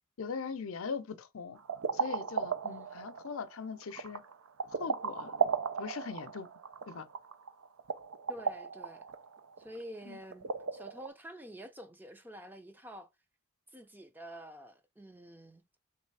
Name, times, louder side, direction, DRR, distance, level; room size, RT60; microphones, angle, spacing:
voice 1, 0.2-1.6 1.9-4.2 4.7-5.4 5.8-6.5 6.9-7.1 10.1-10.2, left 5 dB, 65° left, 0.5 m, -40 dB
sound 1, 1.6-11.1, right 5 dB, 75° right, 0.5 m, -36 dB
voice 2, 2.6-3.0 8.3-9.0 9.6-13.1 13.7-15.6, equal, 10° right, 0.5 m, -48 dB
3.5 x 3.3 x 4.6 m
head